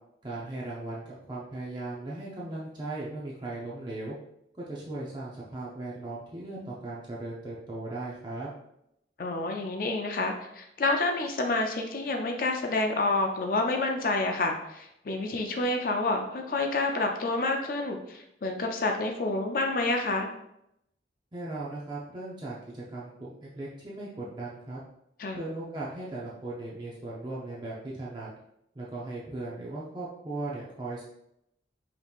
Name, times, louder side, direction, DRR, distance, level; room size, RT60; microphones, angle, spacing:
voice 1, 0.2-4.2 4.5-8.5 21.3-24.8 25.3-28.3 28.7-31.0, right 2 dB, 25° right, -6 dB, 0.6 m, -37 dB
voice 2, 9.2-20.3 25.2-25.4, left 2 dB, 50° left, 3 dB, 0.4 m, -28 dB
5.1 x 3.0 x 2.4 m, 0.79 s
head